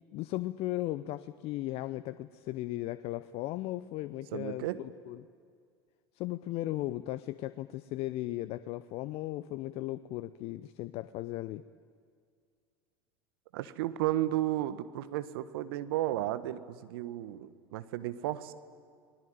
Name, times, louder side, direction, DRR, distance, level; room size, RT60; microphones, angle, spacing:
voice 1, 0.1-5.3 6.2-11.6, left 16 dB, 50° left, 14 dB, 0.7 m, -36 dB
voice 2, 4.3-4.8 13.5-18.5, right 14 dB, 65° right, 13 dB, 1.4 m, -33 dB
29.5 x 20.5 x 9.2 m, 2.1 s
hypercardioid pair, 75°, 13 cm